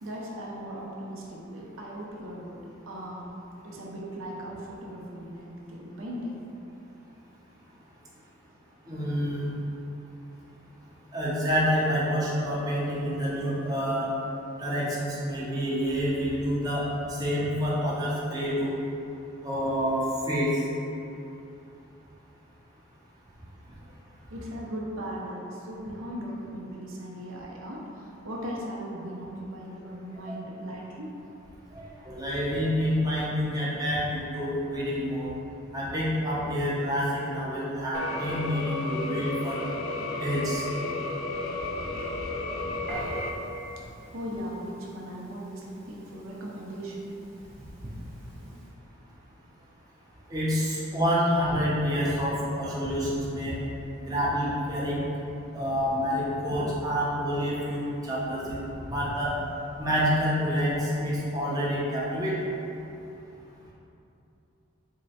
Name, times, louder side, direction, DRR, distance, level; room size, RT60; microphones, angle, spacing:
voice 1, 0.0-3.3 3.6-6.4 24.3-31.1 43.8-47.4, equal, 80° right, -3 dB, 0.6 m, -38 dB
voice 2, 8.9-9.6 11.1-14.1 14.6-18.7 19.4-20.7 30.3-30.4 31.7-35.3 35.7-39.6 40.2-40.7 47.8-47.9 50.3-53.6 54.0-55.0 55.5-59.3 59.7-62.5, equal, 20° right, -7 dB, 0.6 m, -28 dB
sound 1, 37.9-43.3, left 2 dB, 75° left, 0.4 m, -33 dB
Piano, 42.9-48.7, right 2 dB, 45° right, 0.9 m, -45 dB
3.6 x 2.1 x 4.1 m, 2.9 s
head